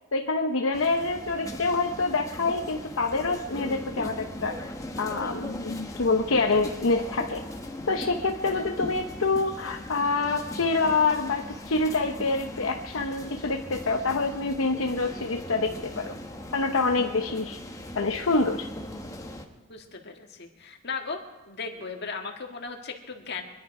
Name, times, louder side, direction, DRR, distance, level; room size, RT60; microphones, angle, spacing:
voice 1, 0.1-4.7 5.0-7.4 7.9-16.2 16.5-17.6 17.9-18.7, left 3 dB, 75° left, 4 dB, 0.8 m, -26 dB
sound 1, 0.7-19.5, left 1 dB, 15° left, 1.4 m, -39 dB
voice 2, 19.7-21.2 21.5-23.4, left 4 dB, 55° left, 2 dB, 1.9 m, -36 dB
24.0 x 11.0 x 4.9 m, 1.2 s
head